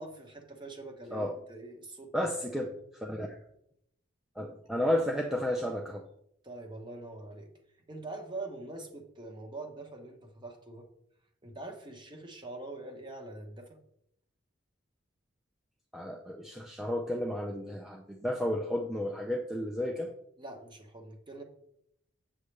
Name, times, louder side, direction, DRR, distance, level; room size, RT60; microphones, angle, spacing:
voice 1, 0.0-2.3 6.4-7.5 7.9-10.9 11.4-13.8 20.4-21.4, right 2 dB, 20° right, 3 dB, 1.1 m, -44 dB
voice 2, 2.1-3.4 4.4-6.1 15.9-20.1, left 1 dB, ahead, 0 dB, 0.4 m, -32 dB
8.1 x 7.3 x 3.3 m, 0.75 s
head